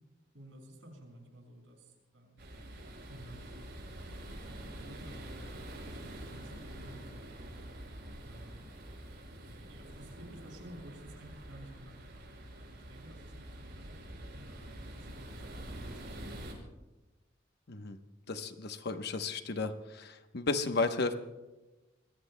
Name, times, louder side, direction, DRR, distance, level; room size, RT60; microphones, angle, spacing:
voice 1, 0.3-2.4 3.1-3.7 4.0-7.7 8.2-8.6 9.7-16.4, right 1 dB, 75° right, 1 dB, 6.0 m, -53 dB
sound 1, 2.4-16.5, right 1 dB, 60° right, 5.8 m, -46 dB
voice 2, 18.3-21.1, left 3 dB, 55° left, 7 dB, 1.0 m, -33 dB
28.0 x 22.0 x 2.2 m, 1.1 s
head